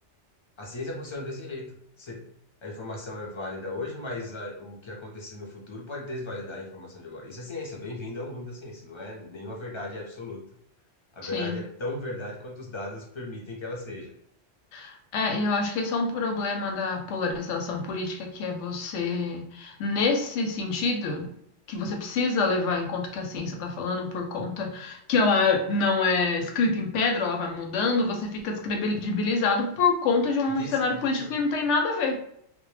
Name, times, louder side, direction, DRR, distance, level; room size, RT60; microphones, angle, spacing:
voice 1, 0.6-2.3 2.6-10.4 11.1-14.1 30.5-31.3, left 2 dB, 40° left, -1 dB, 0.4 m, -37 dB
voice 2, 11.2-11.6 14.7-21.3 21.7-32.2, left 3 dB, 80° left, 3 dB, 0.9 m, -26 dB
2.1 x 2.1 x 3.1 m, 0.71 s
omnidirectional pair, 1.2 m